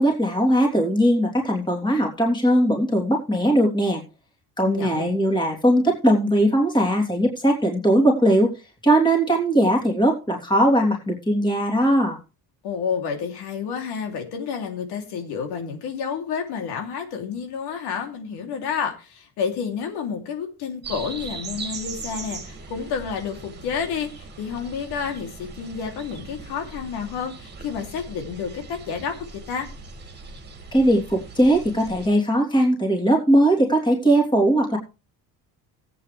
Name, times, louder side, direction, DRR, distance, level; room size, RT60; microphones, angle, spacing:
voice 1, 0.0-4.0 4.6-8.5 8.8-12.2 30.7-34.8, right 1 dB, 10° left, 0 dB, 3.1 m, -19 dB
voice 2, 4.6-5.1 12.6-29.7, left 6 dB, 85° left, 3 dB, 3.1 m, -30 dB
sound 1, 20.8-32.1, right 4 dB, 25° right, 2.2 m, -39 dB
18.0 x 8.6 x 3.3 m, 0.32 s
cardioid pair, 160°, 38 cm